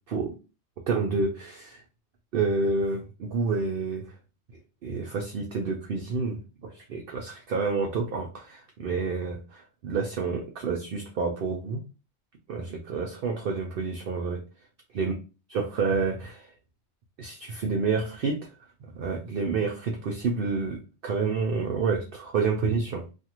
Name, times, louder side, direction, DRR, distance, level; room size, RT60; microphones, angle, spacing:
voice 1, 0.9-1.8 2.3-4.1 4.8-11.8 12.5-14.4 14.9-15.1 15.5-16.5 17.2-18.5 18.9-23.0, right 4 dB, 60° right, 2 dB, 0.6 m, -29 dB
2.6 x 2.4 x 2.9 m, 0.31 s
omnidirectional pair, 1.2 m